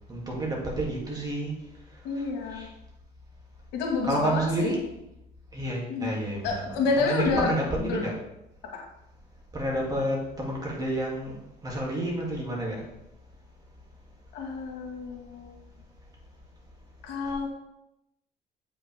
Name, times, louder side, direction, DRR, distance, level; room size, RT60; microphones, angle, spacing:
voice 1, 0.1-1.5 2.1-2.7 4.0-4.8 5.5-8.1 9.5-11.4 11.6-12.9, right 1 dB, 20° right, -3 dB, 2.6 m, -30 dB
voice 2, 2.0-2.7 3.7-4.8 5.9-6.1 6.4-7.5 7.9-8.0 8.7-8.8 14.3-15.5 17.0-17.5, left 4 dB, 90° left, 0 dB, 1.9 m, -29 dB
8.3 x 5.5 x 3.5 m, 0.86 s
cardioid pair, 110°, 17 cm